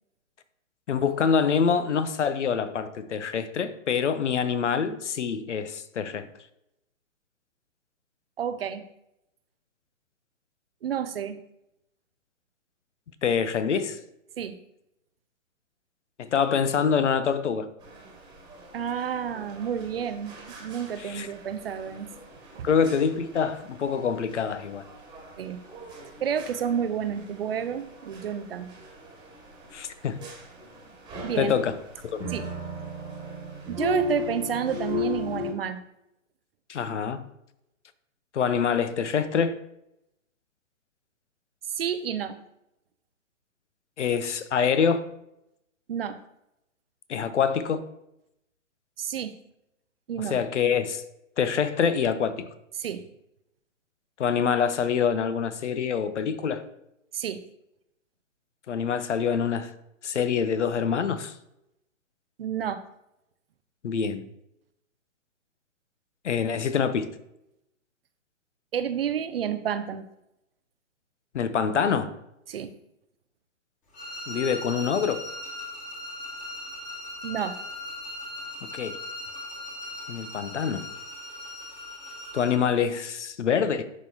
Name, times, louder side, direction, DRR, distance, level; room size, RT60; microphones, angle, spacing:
voice 1, 0.9-6.3 13.2-14.0 16.2-17.7 21.0-21.3 22.6-24.8 29.7-30.2 31.4-31.8 32.1-32.3 36.7-37.2 38.3-39.6 44.0-45.0 47.1-47.8 50.2-51.0 51.4-52.5 54.2-56.7 58.7-59.7 60.0-61.3 63.8-64.2 66.2-67.1 71.3-72.1 74.3-75.3 78.6-79.0 80.1-80.9 82.3-83.8, left 6 dB, 65° left, 0.7 m, -25 dB
voice 2, 8.4-8.9 10.8-11.4 14.4-14.6 18.7-22.1 22.6-22.7 25.4-25.6 26.2-28.7 31.2-31.5 32.3-32.5 33.7-35.8 41.7-42.4 45.9-46.2 49.0-49.3 50.1-50.4 52.8-53.0 57.1-57.4 62.4-62.8 68.7-70.1 72.5-72.7 77.2-77.6, right 8 dB, 50° right, 0.5 m, -30 dB
sound 1, 17.8-35.5, left 4 dB, 10° right, 1.5 m, -39 dB
sound 2, 73.9-82.7, left 1 dB, 20° left, 1.6 m, -39 dB
11.0 x 3.8 x 2.8 m
figure-of-eight pair, 130°, 39 cm